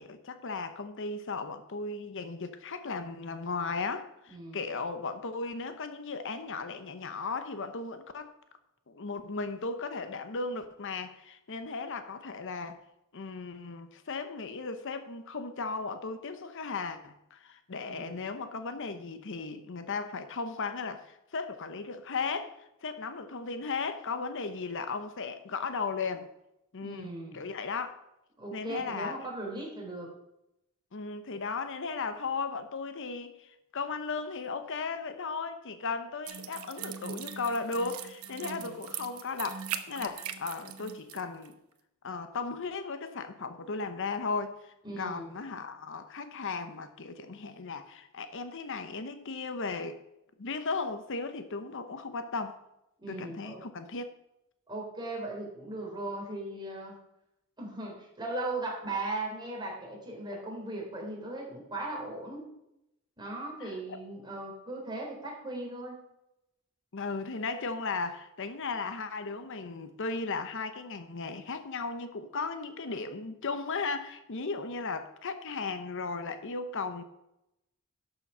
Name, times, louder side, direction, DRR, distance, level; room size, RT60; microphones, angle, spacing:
voice 1, 0.0-8.3 8.9-12.8 13.1-22.5 22.8-26.3 26.7-28.0 28.5-29.2 30.9-41.6 42.0-50.0 50.4-52.6 53.1-54.1 63.6-64.0 66.9-77.0, left 4 dB, 60° left, 0.8 m, -36 dB
voice 2, 4.3-4.6 17.8-18.1 26.8-27.4 28.4-30.1 38.4-38.7 44.8-45.3 53.0-53.6 54.7-56.9 57.6-62.5 63.2-66.0, right 2 dB, 20° right, 3.4 m, -38 dB
sound 1, 36.3-41.2 41.5-41.6, right 9 dB, 90° right, 0.9 m, -41 dB
11.5 x 6.9 x 5.5 m
head